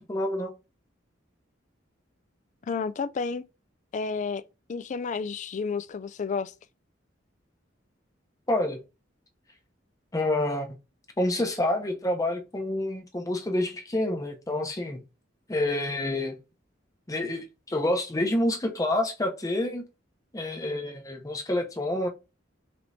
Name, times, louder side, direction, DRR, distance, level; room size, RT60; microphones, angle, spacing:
voice 1, 0.1-0.5 8.5-8.8 10.1-10.8 11.2-15.0 15.5-16.4 17.1-19.8 20.3-22.1, left 1 dB, 20° left, 0.7 m, -28 dB
voice 2, 2.7-3.4 3.9-4.4 4.7-6.5, left 5 dB, 40° left, 0.3 m, -31 dB
5.1 x 3.0 x 2.7 m
head